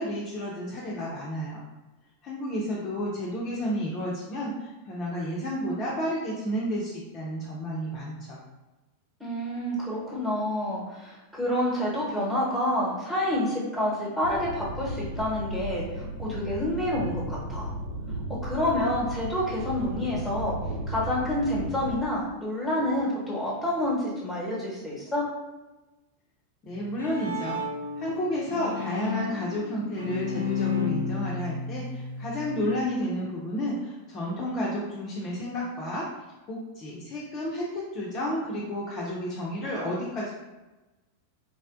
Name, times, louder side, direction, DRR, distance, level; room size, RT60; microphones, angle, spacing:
voice 1, 0.0-1.7 2.2-4.5 4.9-8.4 26.6-27.6 28.0-36.1 36.5-40.3, equal, 30° left, -4 dB, 0.5 m, -31 dB
voice 2, 9.2-17.7 18.4-20.5 20.9-25.3, left 1 dB, ahead, -5 dB, 1.1 m, -28 dB
sound 1, 14.2-21.9, right 1 dB, 70° right, 0.4 m, -35 dB
Bowed string instrument, 26.7-32.8, left 4 dB, 90° left, 0.5 m, -32 dB
3.3 x 2.1 x 2.5 m, 1.1 s
figure-of-eight pair, 90°, 0 cm